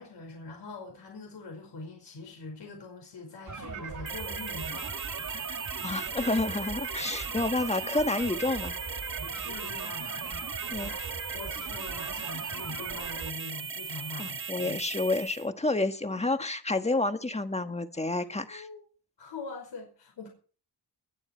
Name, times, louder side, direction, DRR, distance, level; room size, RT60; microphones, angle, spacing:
voice 1, 0.0-5.0 5.2-5.4 9.2-11.0 11.3-14.8 18.5-18.8 19.2-20.3, left 3 dB, 80° left, 5.3 m, -43 dB
sound 1, 3.5-13.3, right 5 dB, 45° right, 2.6 m, -39 dB
sound 2, 4.1-15.5, right 5 dB, 30° right, 1.0 m, -38 dB
voice 2, 5.8-8.7 10.7-10.9 14.2-18.6, left 2 dB, 15° left, 1.4 m, -29 dB
20.5 x 9.9 x 4.4 m
wide cardioid pair, 110°, 42 cm